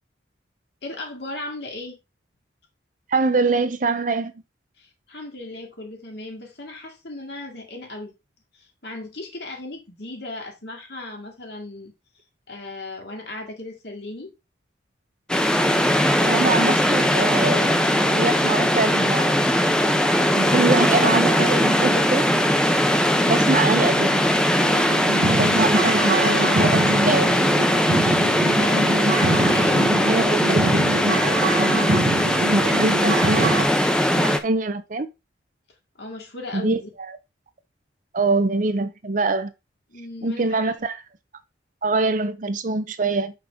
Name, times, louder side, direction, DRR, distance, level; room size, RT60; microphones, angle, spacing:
voice 1, 0.8-2.0 4.8-8.1 8.5-11.9 12.5-14.3 27.0-27.6 28.4-30.4 36.0-36.9 39.9-40.7, left 2 dB, 60° left, 2.2 m, -37 dB
voice 2, 3.1-4.3 16.2-19.3 20.3-22.2 23.2-24.3 25.3-27.3 30.1-30.8 32.5-33.6 34.2-35.1 36.5-37.2 38.1-39.5 40.2-41.0 41.8-43.3, right 3 dB, 45° right, 0.6 m, -24 dB
sound 1, 15.3-34.4, equal, 5° left, 0.6 m, -20 dB
sound 2, 24.6-33.6, right 2 dB, 70° right, 1.1 m, -24 dB
6.6 x 5.8 x 3.6 m
head